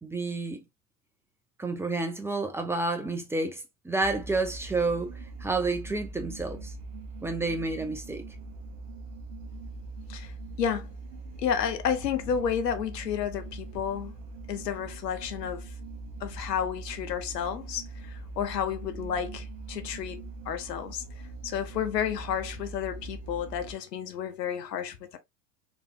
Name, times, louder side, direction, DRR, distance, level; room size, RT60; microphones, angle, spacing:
voice 1, 0.0-0.6 1.6-5.1 5.4-6.7 7.2-8.2, right 3 dB, 5° right, 0.7 m, -30 dB
sound 1, 4.0-23.7, right 3 dB, 45° right, 1.0 m, -42 dB
voice 2, 10.6-10.9 11.4-14.1 14.5-15.7 16.2-21.0 21.4-25.2, left 8 dB, 75° left, 0.9 m, -31 dB
4.1 x 3.3 x 2.3 m
figure-of-eight pair, 85°, 50 cm